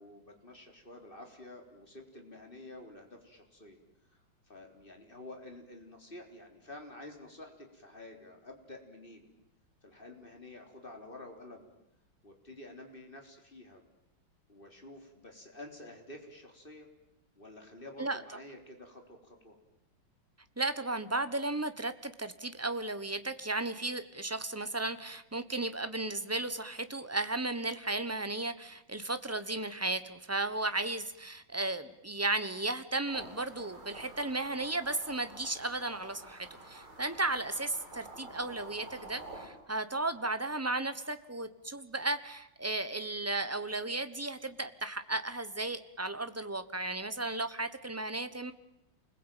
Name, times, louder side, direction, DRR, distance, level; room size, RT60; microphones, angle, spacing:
voice 1, 0.0-3.8 4.5-9.3 9.8-11.7 12.2-13.8 14.5-16.9 17.4-19.6, left 1 dB, 25° left, 3 dB, 3.9 m, -50 dB
voice 2, 20.6-48.5, right 2 dB, 15° right, 11 dB, 0.6 m, -35 dB
sound 1, 33.1-39.5, right 2 dB, 85° right, 6.9 m, -49 dB
28.5 x 21.0 x 9.1 m, 0.85 s
omnidirectional pair, 2.3 m